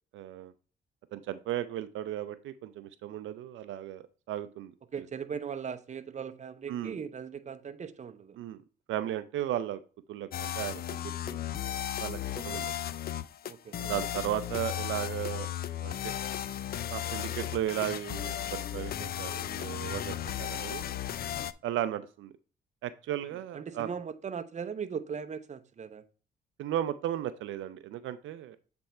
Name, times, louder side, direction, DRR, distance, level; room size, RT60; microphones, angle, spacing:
voice 1, 0.1-0.5 1.1-4.7 6.7-6.9 8.4-8.6 8.9-9.8 10.1-11.4 12.0-12.2 12.4-12.7 13.8-15.5 15.8-16.1 16.9-21.0 21.6-22.3 22.8-23.9 26.6-28.6, right 12 dB, 80° right, 0.5 m, -35 dB
voice 2, 4.9-8.4 12.3-12.6 13.4-13.9 23.5-26.0, right 6 dB, 35° right, 0.7 m, -39 dB
sound 1, 10.3-21.5, left 11 dB, 50° left, 0.4 m, -35 dB
7.7 x 3.4 x 4.2 m
cardioid pair, 90°, 20 cm